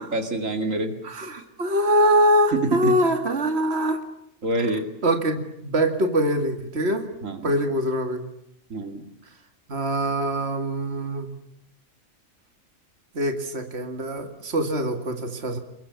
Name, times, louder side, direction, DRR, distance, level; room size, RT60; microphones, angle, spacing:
voice 1, 0.0-0.9 2.5-2.9 4.4-4.9 7.2-7.5 8.7-9.1, right 2 dB, 65° right, 6 dB, 2.7 m, -26 dB
voice 2, 1.0-4.0 5.0-7.1 7.4-8.2 9.7-11.3 13.1-15.6, right 1 dB, 50° right, 6 dB, 2.6 m, -23 dB
29.5 x 22.5 x 7.1 m, 0.78 s
omnidirectional pair, 1.4 m